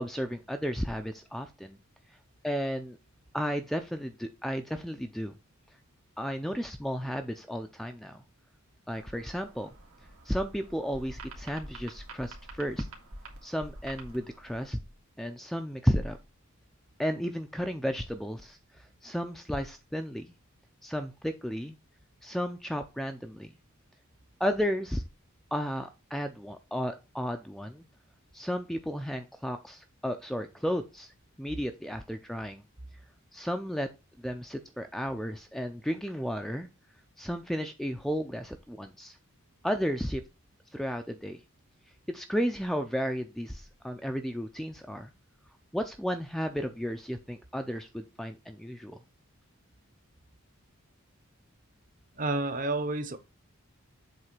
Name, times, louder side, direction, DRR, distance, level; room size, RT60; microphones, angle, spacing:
voice 1, 0.0-1.8 2.4-3.0 3.3-5.3 6.2-8.2 8.9-9.7 10.3-12.9 13.4-14.8 15.2-16.2 17.0-20.3 20.8-21.7 22.2-23.5 24.4-25.0 25.5-27.9 28.3-31.1 31.4-32.6 33.3-33.9 34.2-36.7 37.2-39.2 39.6-40.2 40.7-41.4 42.1-45.1 45.7-49.0, equal, ahead, 0.4 m, -33 dB
sound 1, 8.9-14.7, right 2 dB, 80° right, 2.0 m, -47 dB
voice 2, 52.1-53.2, right 2 dB, 35° right, 0.8 m, -30 dB
7.8 x 3.2 x 5.9 m
head